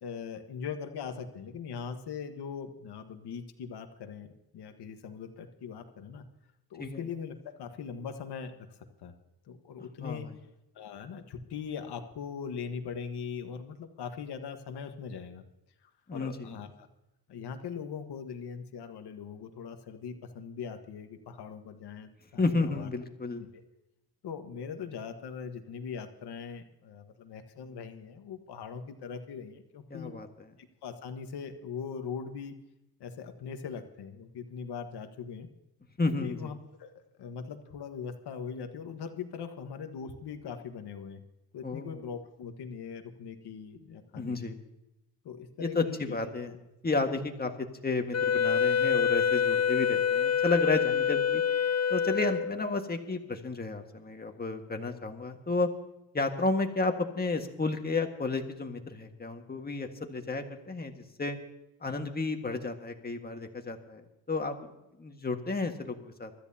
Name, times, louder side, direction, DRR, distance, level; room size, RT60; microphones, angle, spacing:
voice 1, 0.0-6.2 6.7-8.5 9.0-9.1 9.5-10.3 10.7-15.4 16.1-16.7 17.3-22.9 23.4-23.5 24.2-30.1 30.8-32.5 33.0-35.5 36.2-36.9 37.2-41.2 41.5-44.5 45.2-46.2 46.4-46.5, left 6 dB, 90° left, 6 dB, 1.5 m, -40 dB
voice 2, 10.0-10.3 16.1-16.5 22.4-23.4 29.9-30.3 36.0-36.5 41.6-42.0 44.2-44.6 45.6-46.5 46.8-51.4 51.9-55.7 56.1-60.9 61.2-61.4 61.8-64.7 65.0-66.3, left 3 dB, 25° left, 4 dB, 1.7 m, -32 dB
Wind instrument woodwind instrument, 48.1-52.7, left 7 dB, 40° left, 0.7 m, -26 dB
24.5 x 13.5 x 2.8 m, 0.94 s
cardioid pair, 110°, 39 cm